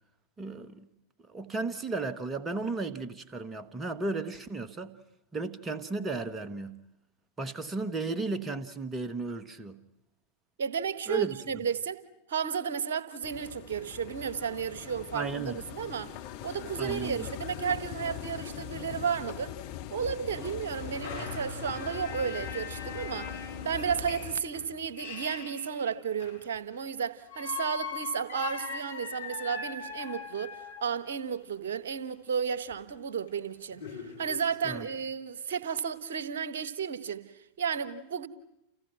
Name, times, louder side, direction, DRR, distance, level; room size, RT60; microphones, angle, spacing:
voice 1, 0.4-0.9 1.3-4.9 5.3-6.8 7.4-9.8 11.1-11.4 15.1-15.6 16.8-17.3 34.6-34.9, right 3 dB, 20° right, 1.6 m, -34 dB
voice 2, 10.6-12.0 12.3-16.1 16.4-19.5 19.9-23.4 23.6-33.8 34.2-37.3 37.6-38.3, right 7 dB, 60° right, 1.4 m, -33 dB
sound 1, 13.2-24.4, left 11 dB, 45° left, 2.2 m, -41 dB
sound 2, 18.0-18.1 18.3-18.4 19.0-19.1 20.4-26.6 27.3-31.0 32.7-32.8 33.3-33.4 33.7-34.8, left 6 dB, 70° left, 4.6 m, -41 dB
30.0 x 29.0 x 6.1 m
figure-of-eight pair, 90°, 0 cm